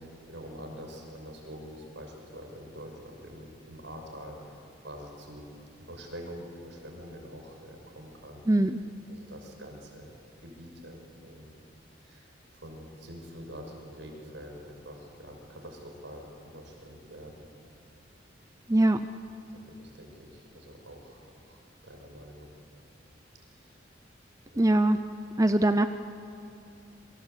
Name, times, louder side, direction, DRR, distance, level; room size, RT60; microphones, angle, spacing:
voice 1, 0.0-5.5 5.8-8.4 9.1-10.1 10.4-11.5 12.0-17.5 19.5-21.6 21.8-22.6 23.5-23.8 24.5-24.8, equal, 75° right, 3 dB, 5.9 m, -46 dB
voice 2, 8.5-8.8 18.7-19.0 24.6-25.0 25.4-25.9, right 1 dB, 15° right, 9 dB, 0.6 m, -22 dB
28.5 x 24.0 x 8.3 m, 2.6 s
head